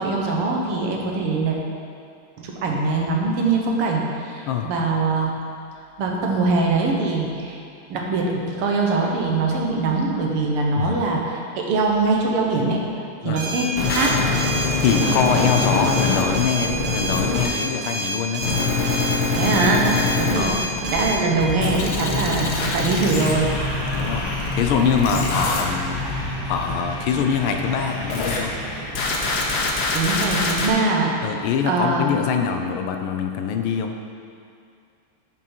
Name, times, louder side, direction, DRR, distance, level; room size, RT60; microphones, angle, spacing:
voice 1, 0.0-1.6 2.4-5.3 6.0-7.6 7.9-12.8 13.2-14.2 19.4-20.6 20.8-23.5 30.0-31.1 31.7-32.0, right 3 dB, 85° right, 0 dB, 2.1 m, -22 dB
sound 1, 13.4-21.2, right 1 dB, 60° right, 1.6 m, -28 dB
sound 2, 13.8-17.5 18.4-21.1 21.4-25.7 28.1-28.4 28.9-30.7, left 3 dB, 55° left, 1.4 m, -24 dB
voice 2, 14.8-18.5 20.3-20.7 23.9-28.6 31.2-33.9, left 6 dB, 80° left, 5 dB, 1.5 m, -24 dB
sound 3, 20.0-31.3, left 1 dB, 15° left, 1.1 m, -31 dB
11.0 x 6.2 x 4.4 m, 2.4 s
omnidirectional pair, 2.4 m